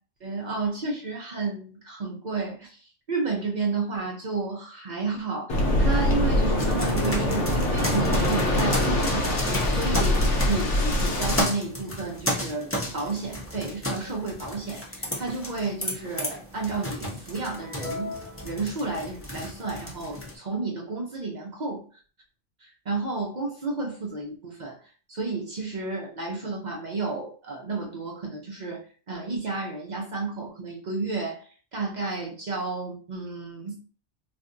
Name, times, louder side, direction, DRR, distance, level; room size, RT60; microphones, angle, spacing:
voice 1, 0.2-18.2 18.4-21.8 22.6-24.8 25.1-33.8, right 3 dB, 50° right, -1 dB, 0.6 m, -32 dB
Waves surf, 5.5-11.4, left 1 dB, 75° left, 1.0 m, -24 dB
sound 1, 6.6-20.3, left 1 dB, 15° left, 0.6 m, -33 dB
2.5 x 2.3 x 3.7 m, 0.40 s
omnidirectional pair, 1.3 m